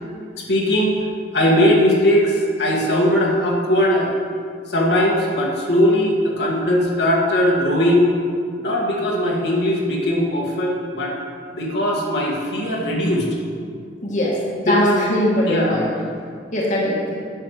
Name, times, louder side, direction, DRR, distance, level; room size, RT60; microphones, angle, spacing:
voice 1, 0.4-1.0 1.3-4.1 4.7-8.1 8.6-11.2 11.5-13.3 14.7-15.0 15.5-15.8, left 1 dB, 70° left, -2 dB, 1.9 m, -19 dB
voice 2, 14.0-15.9 16.5-17.2, left 1 dB, 45° left, -5 dB, 1.7 m, -21 dB
10.0 x 6.5 x 6.5 m, 2.2 s
head